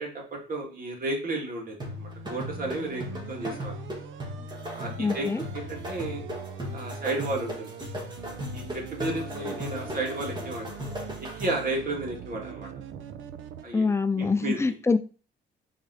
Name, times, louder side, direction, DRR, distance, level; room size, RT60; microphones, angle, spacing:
voice 1, 0.0-3.7 4.7-5.3 5.5-6.2 6.7-7.7 8.5-10.8 11.2-12.7 13.6-13.9 14.2-14.6, right 2 dB, 45° right, 0 dB, 2.5 m, -33 dB
sound 1, 1.8-11.7, left 1 dB, 20° right, 2.2 m, -37 dB
sound 2, 1.8-13.6, right 9 dB, 80° right, 0.7 m, -42 dB
voice 2, 5.0-5.4 13.7-15.0, left 4 dB, 15° left, 10 dB, 0.6 m, -25 dB
5.5 x 3.7 x 5.0 m, 0.36 s
cardioid pair, 90°, 20 cm